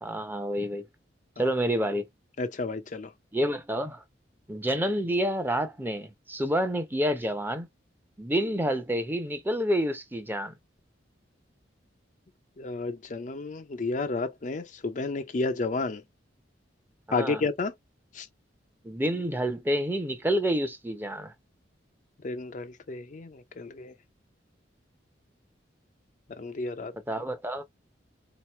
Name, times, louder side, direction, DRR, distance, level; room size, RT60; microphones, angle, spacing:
voice 1, 0.0-0.9 1.4-2.1 3.3-4.0 4.5-7.7 8.2-10.5 17.1-17.4 18.8-21.3 27.1-27.6, equal, 10° right, 0.7 m, -28 dB
voice 2, 2.4-3.1 12.6-16.0 17.1-17.7 18.1-18.3 22.2-23.9 26.4-26.9, left 3 dB, 40° left, 0.5 m, -31 dB
4.0 x 2.9 x 3.0 m
head